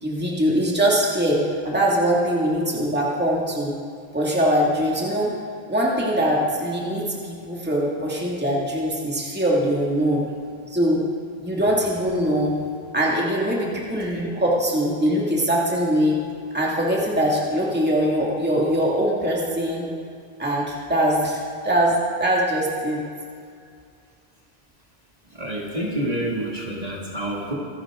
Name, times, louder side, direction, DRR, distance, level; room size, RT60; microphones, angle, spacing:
voice 1, 0.0-3.8 4.1-5.3 5.7-10.2 10.7-11.1 11.4-12.6 12.9-16.2 16.5-19.9 20.4-23.1, equal, 10° right, -4 dB, 2.1 m, -22 dB
voice 2, 25.2-27.5, right 1 dB, 40° right, -3 dB, 2.3 m, -28 dB
25.0 x 11.5 x 3.7 m, 2.2 s
omnidirectional pair, 1.1 m